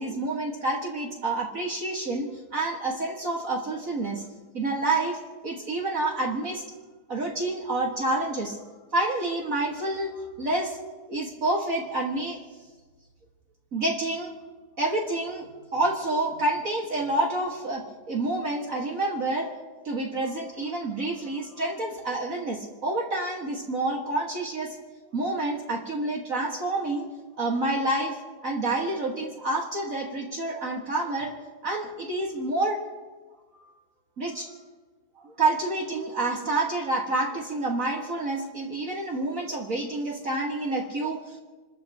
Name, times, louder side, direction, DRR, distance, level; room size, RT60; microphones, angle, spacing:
voice 1, 0.0-4.2 4.5-6.6 7.1-8.6 8.9-10.8 11.1-12.4 13.7-14.3 14.8-19.5 19.8-24.8 25.1-27.1 27.4-28.2 28.4-31.3 31.6-32.8 33.5-33.6 34.2-34.5 35.2-41.4, right 2 dB, 45° right, -1 dB, 2.1 m, -28 dB
29.5 x 14.0 x 3.0 m, 1.4 s
omnidirectional pair, 2.1 m